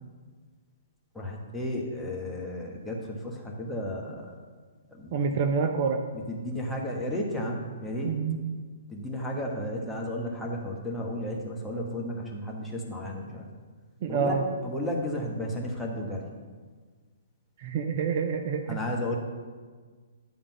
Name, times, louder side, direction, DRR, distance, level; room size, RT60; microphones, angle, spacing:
voice 1, 1.1-4.3 5.0-5.2 6.3-8.1 8.9-13.4 14.1-14.3 14.6-16.2 18.7-19.2, left 1 dB, 5° left, -3 dB, 1.3 m, -33 dB
voice 2, 5.1-6.0 8.0-8.4 14.0-14.5 17.6-18.8, right 5 dB, 45° right, 6 dB, 0.5 m, -27 dB
10.0 x 3.6 x 5.9 m, 1.5 s
figure-of-eight pair, 120°, 0 cm